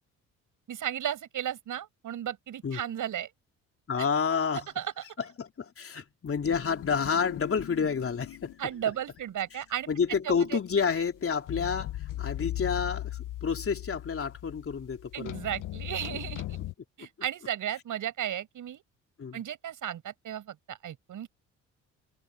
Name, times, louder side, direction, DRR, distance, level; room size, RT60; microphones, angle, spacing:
voice 1, 0.7-3.3 4.0-4.1 4.8-4.9 8.6-9.9 10.2-10.5 15.1-16.6 17.0-18.8 19.3-21.3, right 10 dB, 60° right, 6.6 m, -34 dB
voice 2, 3.9-4.8 5.2-8.6 9.5-9.6 9.9-15.4 19.2-19.4, left 6 dB, 40° left, 3.6 m, -29 dB
sound 1, 6.4-8.9 9.2-9.3 11.5-16.7, left 14 dB, 60° left, 1.2 m, -38 dB
supercardioid pair, 65°, 35 cm